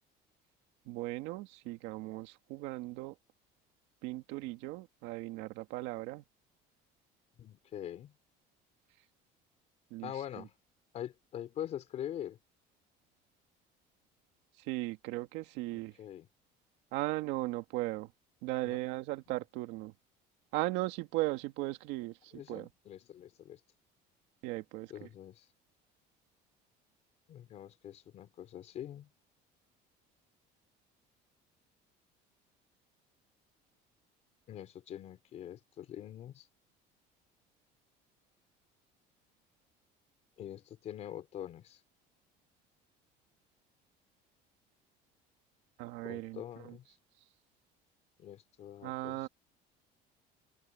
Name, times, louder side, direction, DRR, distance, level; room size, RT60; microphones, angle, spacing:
voice 1, 0.9-3.2 4.0-6.2 9.9-10.5 14.6-16.0 16.9-18.1 18.4-19.9 20.5-22.7 24.4-25.1 45.8-46.8 48.8-49.3, right 19 dB, 85° right, 2.1 m, -37 dB
voice 2, 7.4-8.1 10.0-10.5 10.9-12.4 15.7-16.3 18.6-18.8 22.3-23.6 24.9-25.5 27.3-29.1 34.5-36.5 40.4-41.8 46.0-46.9 48.2-49.3, left 11 dB, 40° left, 3.6 m, -44 dB
open air
cardioid pair, 175°, 18 cm